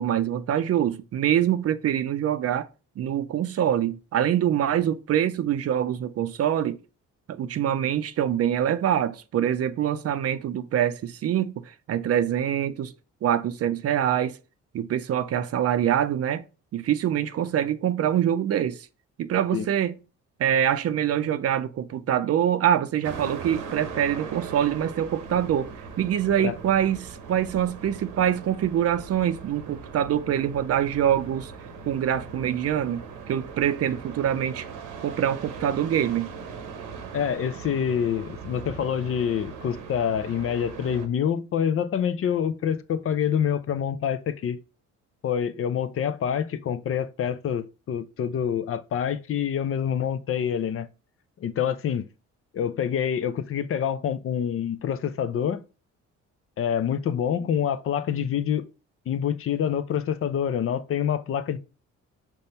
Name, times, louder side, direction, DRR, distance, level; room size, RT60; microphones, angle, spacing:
voice 1, 0.0-2.7 3.0-6.8 7.3-12.9 13.2-14.4 14.7-16.4 16.7-18.9 19.2-19.9 20.4-25.7 26.0-31.5 31.9-33.0 33.3-34.7 35.0-36.3, right 10 dB, 55° right, 0.5 m, -25 dB
sound 1, 23.0-41.1, right 5 dB, 90° right, 0.9 m, -40 dB
voice 2, 37.1-44.6 45.2-50.9 51.4-52.1 52.5-55.6 56.6-58.7 59.1-61.6, left 8 dB, 50° left, 0.5 m, -26 dB
5.3 x 2.2 x 4.2 m
cardioid pair, 90°, 30 cm